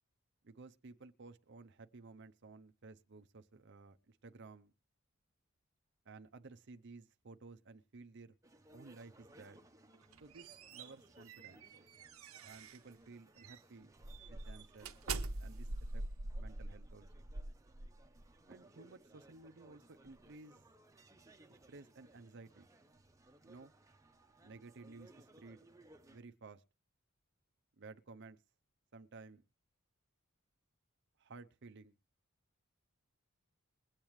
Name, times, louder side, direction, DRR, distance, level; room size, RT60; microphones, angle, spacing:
voice 1, 0.4-4.7 6.0-8.4 8.7-9.6 10.2-12.1 12.4-13.9 14.2-15.0 15.4-16.0 16.3-17.2 18.5-20.7 21.5-22.7 23.4-23.7 24.4-25.7 26.1-26.6 27.8-28.4 28.9-29.4 31.2-31.9, right 3 dB, 55° right, 0.7 m, -55 dB
atmosphere in the pub, 8.4-26.2, right 1 dB, 15° right, 0.9 m, -63 dB
sound 1, 9.9-12.9 13.4-13.6 14.0-18.3, right 2 dB, 85° right, 1.0 m, -44 dB
22.0 x 8.9 x 3.2 m
head